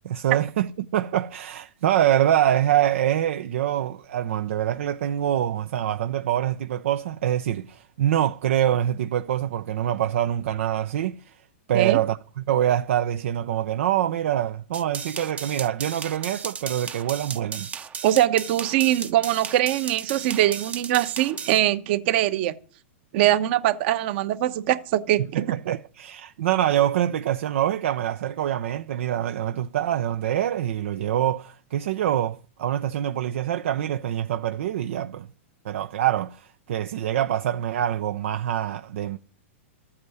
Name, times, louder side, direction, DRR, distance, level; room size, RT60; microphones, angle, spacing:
voice 1, 0.0-11.4 11.7-17.7 25.3-35.3 35.6-39.2, right 11 dB, 70° right, 0.6 m, -25 dB
sound 1, 14.7-21.6, right 6 dB, 20° right, 0.7 m, -35 dB
voice 2, 18.0-22.5 23.1-25.4, right 13 dB, 50° right, 1.2 m, -22 dB
14.0 x 8.7 x 7.9 m
hypercardioid pair, 140°, 7 cm